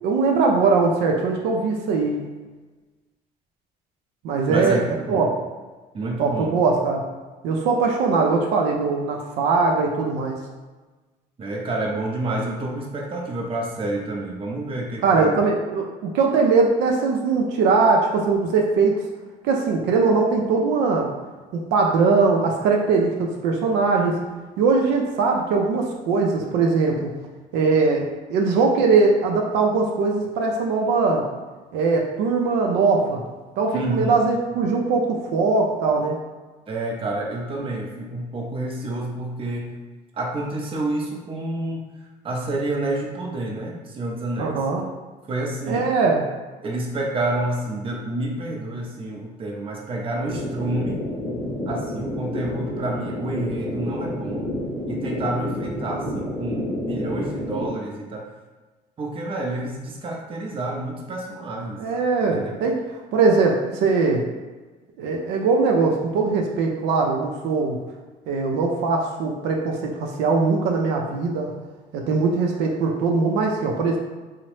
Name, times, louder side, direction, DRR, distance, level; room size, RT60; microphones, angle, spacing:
voice 1, 0.0-2.2 4.2-4.8 5.1-5.3 6.2-7.0 7.4-10.4 15.0-19.0 19.4-21.1 21.5-24.2 24.6-27.1 27.5-31.3 31.7-33.2 33.6-36.2 44.4-44.8 45.6-46.3 55.9-56.0 61.8-62.8 63.1-64.2 65.0-67.8 68.3-71.5 71.9-74.0, right 4 dB, 90° right, 0 dB, 0.5 m, -21 dB
voice 2, 4.5-5.3 5.9-6.6 11.4-15.4 33.7-34.2 36.7-39.7 40.1-41.8 42.2-44.8 45.3-45.9 46.6-51.0 51.7-54.5 54.9-58.3 59.0-61.8 62.3-62.6, right 2 dB, 30° right, -1 dB, 0.5 m, -29 dB
sound 1, 50.3-57.7, left 1 dB, 10° left, 0.8 m, -29 dB
2.7 x 2.1 x 3.1 m, 1.3 s
cardioid pair, 110°, 17 cm